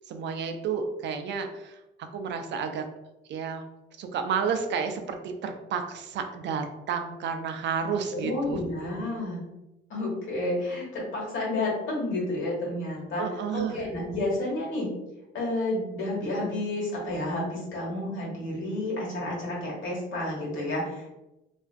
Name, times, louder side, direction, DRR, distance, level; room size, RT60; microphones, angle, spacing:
voice 1, 0.0-2.9 3.3-3.6 4.0-8.6 13.2-13.8, right 6 dB, 65° right, 6 dB, 0.4 m, -31 dB
voice 2, 8.1-9.4 9.9-13.3 13.5-14.9 15.3-21.2, left 1 dB, 80° left, -4 dB, 1.1 m, -30 dB
2.4 x 2.3 x 2.3 m, 0.95 s
cardioid pair, 90°, 20 cm